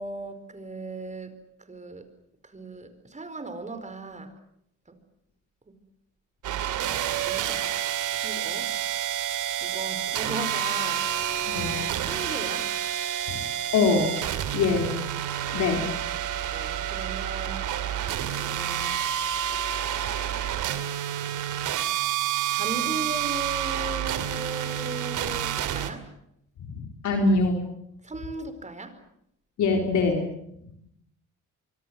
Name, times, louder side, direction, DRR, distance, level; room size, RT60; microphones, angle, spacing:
voice 1, 0.0-1.3 1.7-2.0 2.5-4.3 5.7-5.8 7.2-7.6 8.1-8.7 9.6-11.1 11.5-12.7 16.5-17.6 18.4-19.3 22.5-26.0 28.0-28.9, right 2 dB, 25° right, 10 dB, 4.8 m, -37 dB
sound 1, 6.4-25.9, right 11 dB, 85° right, 2.4 m, -29 dB
voice 2, 11.5-11.8 13.3-13.4 13.7-14.1 14.5-14.9 15.5-15.9 26.7-27.6 29.6-30.2, left 3 dB, 75° left, 3 dB, 4.0 m, -23 dB
25.0 x 24.0 x 7.8 m, 0.75 s
cardioid pair, 90°, 30 cm